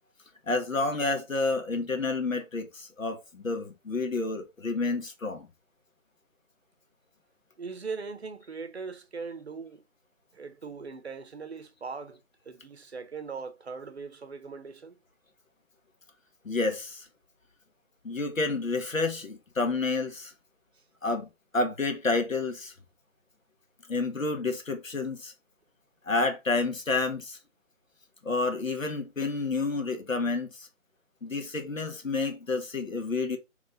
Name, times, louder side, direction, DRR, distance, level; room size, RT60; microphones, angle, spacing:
voice 1, 0.5-5.5 16.4-17.1 18.0-20.3 21.0-21.3 21.5-22.7 23.9-25.3 26.0-27.4 28.2-30.7 31.2-33.4, left 3 dB, 85° left, 1.3 m, -29 dB
voice 2, 7.6-9.8 10.3-15.0, right 4 dB, 55° right, 0.7 m, -40 dB
3.2 x 3.1 x 3.9 m
figure-of-eight pair, 160°, 39 cm